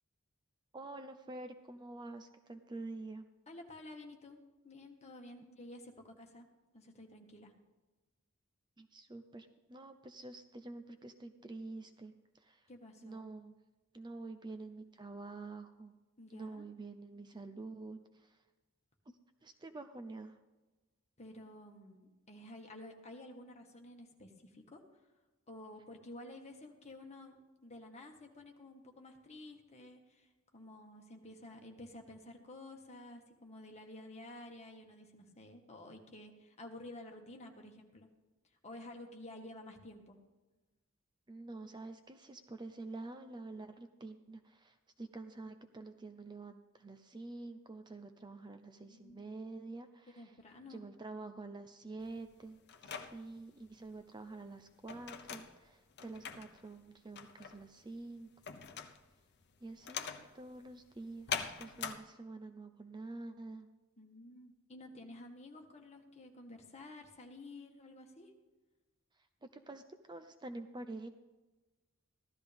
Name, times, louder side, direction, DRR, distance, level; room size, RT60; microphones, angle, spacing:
voice 1, 0.7-3.2 8.8-12.6 13.0-13.5 13.9-15.9 16.3-18.4 19.1-19.2 19.4-20.4 41.3-50.4 50.7-58.3 59.6-63.7 69.5-71.1, right 2 dB, 20° right, 8 dB, 0.5 m, -48 dB
voice 2, 3.5-4.4 4.6-6.5 6.7-7.5 12.7-13.2 16.2-16.6 21.2-24.8 25.5-38.1 38.6-40.2 48.8-49.2 50.1-50.8 64.0-68.3, left 1 dB, 30° left, 2 dB, 1.6 m, -52 dB
sound 1, 52.0-62.0, left 7 dB, 55° left, 0.8 m, -44 dB
15.0 x 12.5 x 3.5 m, 1.2 s
head